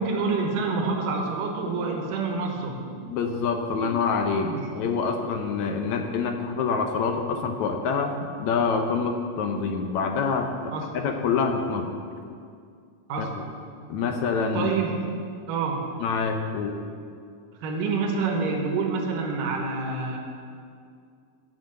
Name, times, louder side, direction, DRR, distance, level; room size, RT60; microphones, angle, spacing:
voice 1, 0.0-2.9 3.8-3.9 4.4-4.7 10.7-10.9 13.1-13.4 14.5-15.2 15.5-16.0 17.6-20.2, right 4 dB, 85° right, 1 dB, 2.7 m, -27 dB
voice 2, 3.1-10.5 10.9-11.9 13.2-13.3 13.9-14.7 16.0-16.8, left 5 dB, 70° left, 4 dB, 1.9 m, -26 dB
13.0 x 4.9 x 7.6 m, 2.3 s
omnidirectional pair, 3.7 m